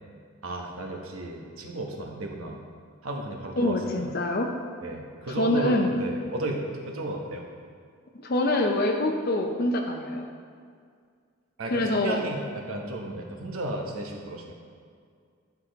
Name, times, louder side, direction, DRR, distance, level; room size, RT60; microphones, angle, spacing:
voice 1, 0.4-2.6 3.0-4.1 4.8-7.5 11.6-14.5, right 2 dB, 80° right, 1 dB, 1.1 m, -33 dB
voice 2, 3.5-4.5 5.3-6.0 8.2-10.3 11.6-12.3, left 1 dB, 45° left, 2 dB, 0.6 m, -25 dB
11.0 x 4.9 x 3.9 m, 2.1 s
head